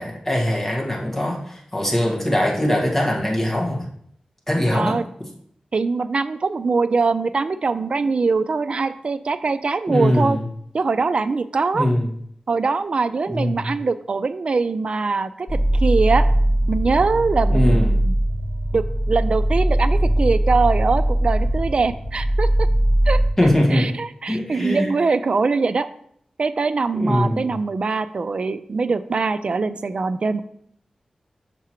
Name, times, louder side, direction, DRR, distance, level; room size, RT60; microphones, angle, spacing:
voice 1, 0.0-3.8 4.5-4.9 9.9-10.4 11.7-12.1 13.3-13.7 17.5-17.9 23.4-23.9 24.3-24.9 26.9-27.5, left 1 dB, 15° left, -2 dB, 1.4 m, -21 dB
voice 2, 4.7-5.0 5.7-10.4 10.7-11.9 12.5-16.3 16.7-18.2 18.7-22.7 23.1-23.2 23.7-25.9 26.4-30.4, right 4 dB, 55° right, 12 dB, 0.3 m, -22 dB
sound 1, 15.5-23.3, right 1 dB, 45° left, 2.1 m, -20 dB
6.0 x 5.7 x 3.0 m, 0.68 s
wide cardioid pair, 105°, 2 cm